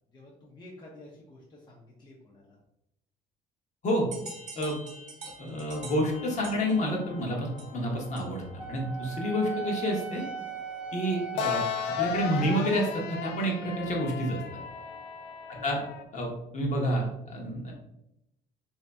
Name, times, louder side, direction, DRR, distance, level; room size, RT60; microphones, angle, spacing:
voice 1, 0.1-2.6 14.3-14.6 15.5-15.8, left 1 dB, 25° left, -4 dB, 0.7 m, -51 dB
sound 1, 4.1-8.6, right 3 dB, 45° right, 1.1 m, -46 dB
voice 2, 5.4-10.2 10.9-11.6 12.0-14.4 15.6-15.8 16.1-17.7, equal, 45° left, -1 dB, 1.1 m, -29 dB
sound 2, 5.7-16.0, left 7 dB, 80° left, 0.4 m, -37 dB
Wind instrument woodwind instrument, 8.6-12.7, right 7 dB, 5° right, 0.5 m, -39 dB
3.2 x 2.8 x 3.4 m, 0.84 s
cardioid pair, 110°, 17 cm